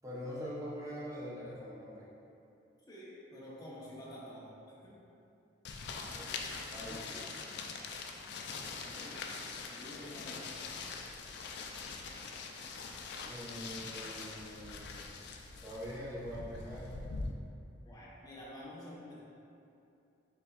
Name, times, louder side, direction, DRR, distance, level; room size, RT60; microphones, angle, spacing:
voice 1, 0.0-2.1 6.1-7.8 13.2-15.1 15.6-17.0, equal, 20° right, -7 dB, 0.7 m, -44 dB
voice 2, 2.9-5.0 8.7-10.5 17.8-19.2, left 1 dB, 20° left, -7 dB, 0.7 m, -49 dB
sound 1, 5.6-17.3, left 4 dB, 60° left, 0.3 m, -43 dB
5.3 x 3.4 x 2.3 m, 2.7 s
head